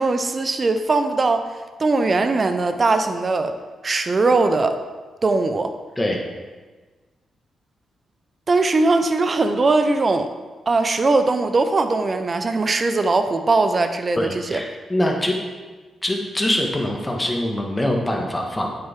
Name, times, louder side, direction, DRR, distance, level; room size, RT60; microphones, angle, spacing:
voice 1, 0.0-1.5 1.8-3.6 3.8-4.8 5.2-5.8 8.5-10.3 10.7-14.6, right 3 dB, 45° right, 8 dB, 0.8 m, -20 dB
voice 2, 14.2-15.4 16.0-18.7, left 1 dB, 15° left, 1 dB, 1.8 m, -23 dB
8.8 x 6.8 x 3.7 m, 1.3 s
supercardioid pair, 50°, 0 cm